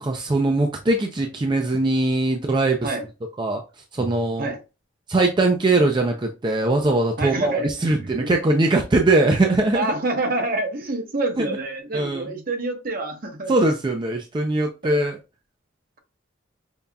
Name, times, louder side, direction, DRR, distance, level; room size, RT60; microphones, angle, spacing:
voice 1, 0.0-2.9 3.4-3.6 3.9-4.5 5.1-9.9 11.4-11.5 11.9-12.3 13.5-15.2, right 2 dB, 25° right, 0.4 m, -21 dB
voice 2, 7.2-7.7 8.2-8.3 9.7-13.5 14.8-15.0, right 2 dB, 50° right, 0.8 m, -27 dB
5.3 x 2.3 x 2.2 m
head